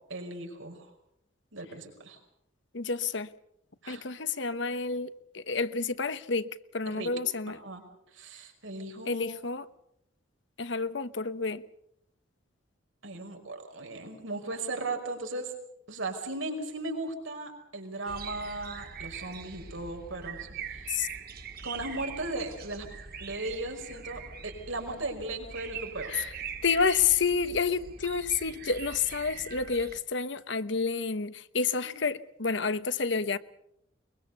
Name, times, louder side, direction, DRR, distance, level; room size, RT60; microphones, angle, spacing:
voice 1, 0.1-0.9 1.5-2.2 3.8-4.0 6.9-7.1 7.6-7.8 8.1-9.3 13.0-15.5 15.9-21.0 21.6-22.9 23.2-26.1 31.8-32.0, right 2 dB, 85° right, 5.3 m, -37 dB
voice 2, 2.7-3.3 3.9-7.6 9.1-9.7 10.6-11.6 20.9-21.1 26.1-26.3 26.6-33.4, left 5 dB, 65° left, 1.0 m, -29 dB
sound 1, 18.1-30.0, right 6 dB, 50° right, 1.9 m, -42 dB
23.0 x 22.5 x 6.8 m
head